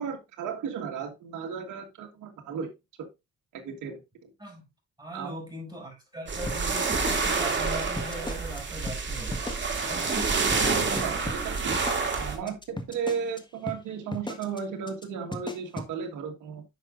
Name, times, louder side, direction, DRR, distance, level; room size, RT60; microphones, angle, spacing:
voice 1, 0.0-2.7 3.0-3.1 3.5-4.3 5.1-5.3 10.9-11.8 12.0-16.6, right 6 dB, 80° right, 1.7 m, -35 dB
voice 2, 5.0-9.6 9.8-10.2, equal, 15° right, 5.9 m, -40 dB
sound 1, 6.3-12.4, right 4 dB, 40° right, 2.5 m, -28 dB
sound 2, 6.5-8.6 8.9-9.0 9.3-9.8 10.1-10.3 10.5-13.4 13.7-13.8 14.1-14.6 14.9-15.0 15.3-15.9, left 2 dB, 15° left, 1.5 m, -37 dB
9.9 x 6.2 x 2.5 m
cardioid pair, 90°, 30 cm